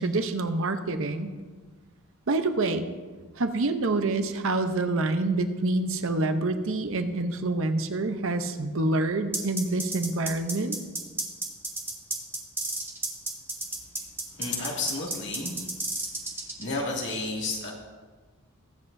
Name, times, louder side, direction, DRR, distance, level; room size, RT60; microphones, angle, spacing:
voice 1, 0.0-1.3 2.3-2.9 3.4-10.8, right 2 dB, 60° right, 8 dB, 0.7 m, -27 dB
sound 1, 9.3-16.7, right 2 dB, 10° right, 1.1 m, -32 dB
voice 2, 14.3-15.6 16.6-17.7, left 3 dB, 55° left, -3 dB, 2.4 m, -31 dB
21.5 x 7.8 x 2.7 m, 1.4 s
head